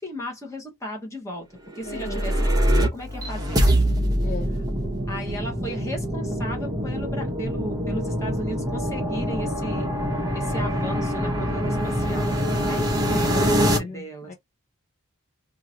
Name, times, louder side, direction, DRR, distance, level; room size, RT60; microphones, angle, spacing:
voice 1, 0.0-1.4 1.7-3.8 5.1-9.9 10.3-12.4 12.7-14.3, equal, 15° left, 1.1 m, -35 dB
sound 1, 1.7-13.8, equal, 15° right, 0.7 m, -24 dB
voice 2, 1.9-2.4 4.2-4.6 12.3-14.3, left 3 dB, 35° left, 0.4 m, -37 dB
2.8 x 2.5 x 2.8 m
head